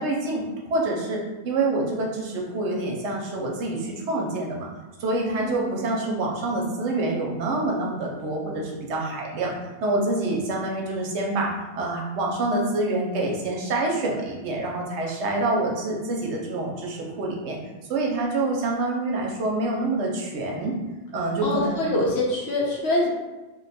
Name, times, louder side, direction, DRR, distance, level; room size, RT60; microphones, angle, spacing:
voice 1, 0.0-4.7 5.0-9.5 9.8-17.6 17.9-20.8 21.1-21.8, right 2 dB, 70° right, -1 dB, 0.8 m, -26 dB
voice 2, 21.4-23.1, left 1 dB, 65° left, -2 dB, 0.8 m, -24 dB
2.5 x 2.2 x 3.9 m, 1.1 s
omnidirectional pair, 1.3 m